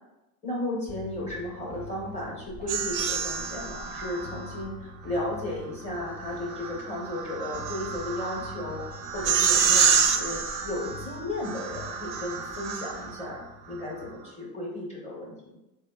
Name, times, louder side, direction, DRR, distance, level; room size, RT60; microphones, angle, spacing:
voice 1, 0.4-13.4 13.7-15.6, left 1 dB, 15° left, -4 dB, 0.6 m, -34 dB
sound 1, 0.9-14.2, left 1 dB, 25° right, 0.4 m, -45 dB
sound 2, 2.7-4.6 6.1-13.3, right 6 dB, 75° right, 0.5 m, -28 dB
3.4 x 2.0 x 2.2 m, 0.94 s
supercardioid pair, 120°, 43 cm